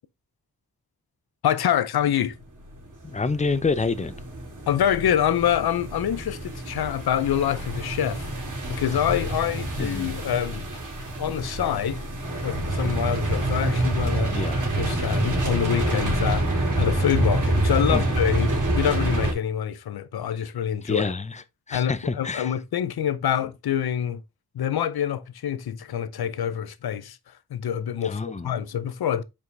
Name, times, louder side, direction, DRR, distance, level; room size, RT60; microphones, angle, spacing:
voice 1, 1.4-2.3 4.7-8.3 8.7-10.6 11.2-12.0 12.4-14.4 14.8-21.1 21.7-24.2 24.5-27.2 27.5-29.2, left 9 dB, 75° left, 0.7 m, -26 dB
sound 1, 2.8-19.3, right 2 dB, 55° right, 2.8 m, -27 dB
voice 2, 3.0-4.2 9.8-10.1 14.3-14.6 17.9-18.2 20.9-22.5 28.0-28.5, left 4 dB, 20° left, 0.5 m, -28 dB
5.4 x 4.8 x 3.9 m
wide cardioid pair, 100°, 37 cm